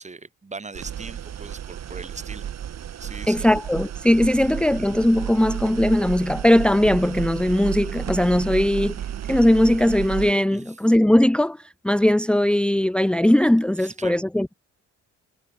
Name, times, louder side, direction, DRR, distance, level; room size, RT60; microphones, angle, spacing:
voice 1, 0.0-2.5 3.0-3.5 4.4-4.5 10.5-10.7 13.8-14.2, right 4 dB, 25° right, 2.5 m, -39 dB
sound 1, 0.7-10.3, right 10 dB, 60° right, 2.5 m, -32 dB
voice 2, 3.3-9.0 9.3-14.5, left 1 dB, 5° left, 1.0 m, -19 dB
cardioid pair, 90°, 30 cm